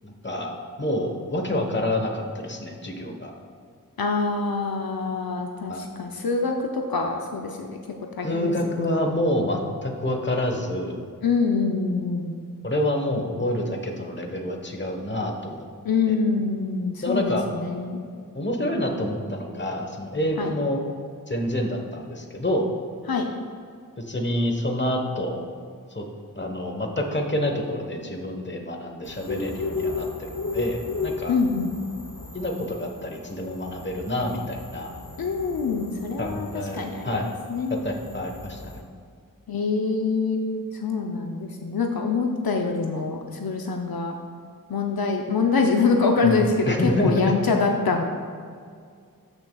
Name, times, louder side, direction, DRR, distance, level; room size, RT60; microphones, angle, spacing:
voice 1, 0.0-0.5 0.8-3.3 5.7-5.8 8.2-11.0 12.6-15.6 16.1-16.2 17.0-17.5 18.3-20.8 21.3-22.7 24.0-25.4 25.9-26.1 26.3-31.4 32.3-34.9 36.2-37.3 37.7-38.8 46.2-47.3, left 1 dB, 30° left, 2 dB, 1.2 m, -27 dB
voice 2, 4.0-7.8 8.2-8.5 11.2-12.3 15.8-18.0 20.4-20.5 23.1-23.3 31.3-31.7 35.2-36.5 36.7-37.1 37.5-37.8 39.5-40.4 40.8-44.1 44.7-48.0, left 4 dB, 80° left, 3 dB, 0.7 m, -25 dB
sound 1, 29.0-38.8, left 3 dB, 60° left, 1.0 m, -35 dB
13.5 x 6.1 x 2.3 m, 2.2 s
wide cardioid pair, 45°, 36 cm